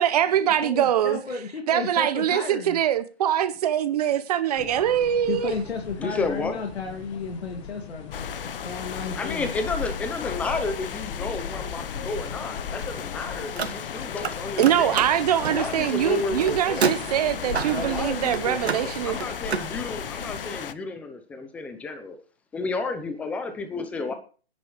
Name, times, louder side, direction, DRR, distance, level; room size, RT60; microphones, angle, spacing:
voice 1, 0.0-1.2 1.7-5.5 14.6-19.2, right 10 dB, 40° right, 1.0 m, -23 dB
voice 2, 0.6-2.8 5.3-9.5 15.8-15.9, left 4 dB, 80° left, 2.5 m, -33 dB
sound 1, 4.6-20.4, left 6 dB, 30° left, 1.5 m, -39 dB
voice 3, 6.0-6.6 9.2-15.1 15.5-17.0 17.7-22.2 22.5-24.1, left 3 dB, 5° left, 0.7 m, -32 dB
sound 2, 8.1-20.7, left 8 dB, 60° left, 1.0 m, -36 dB
Car, 13.4-14.3 14.6-19.7, right 5 dB, 85° right, 1.7 m, -30 dB
22.0 x 10.0 x 3.2 m
hypercardioid pair, 155°, 31 cm